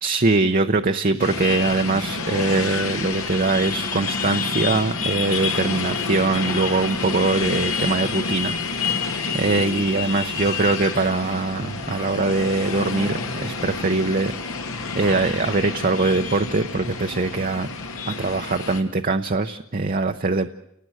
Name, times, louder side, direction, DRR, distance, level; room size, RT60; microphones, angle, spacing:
voice 1, 0.0-8.6 9.1-14.3 14.9-17.7 18.1-20.5, right 3 dB, 40° right, 5 dB, 0.8 m, -22 dB
sound 1, 1.2-18.8, left 4 dB, 80° left, 2.6 m, -28 dB
29.5 x 18.5 x 7.9 m, 0.82 s
head